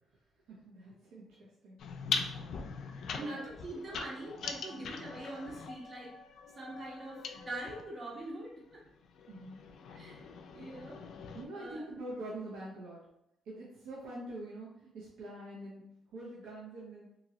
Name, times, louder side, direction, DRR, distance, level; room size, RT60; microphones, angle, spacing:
voice 1, 0.5-2.3 3.2-3.5 4.7-4.9 9.3-9.7 11.3-13.0 13.4-17.1, right 1 dB, 90° right, -5 dB, 0.6 m, -45 dB
sound 1, 1.8-7.9 8.7-11.4, left 5 dB, 70° left, 0.3 m, -41 dB
voice 2, 3.1-6.1 6.5-8.8 9.9-10.2 10.5-11.0 11.5-11.8, right 2 dB, 45° right, -4 dB, 0.8 m, -43 dB
2.9 x 2.6 x 2.7 m, 0.80 s
cardioid pair, 90°, 0 cm